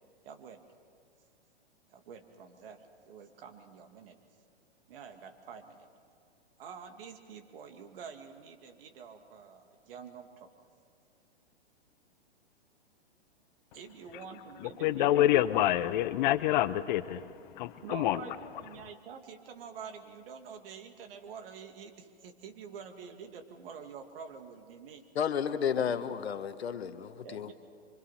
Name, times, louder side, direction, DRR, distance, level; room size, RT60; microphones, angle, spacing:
voice 1, 0.2-0.6 1.9-4.2 4.9-5.9 6.6-10.5 13.7-15.6 17.8-25.0 25.7-26.0 27.2-27.5, right 6 dB, 60° right, 6 dB, 2.3 m, -47 dB
voice 2, 14.8-17.3 17.6-18.2, left 13 dB, 45° left, 15 dB, 0.8 m, -26 dB
voice 3, 25.1-27.5, left 8 dB, 75° left, 10 dB, 1.4 m, -32 dB
25.5 x 24.5 x 5.8 m, 2.2 s
hypercardioid pair, 125°, 32 cm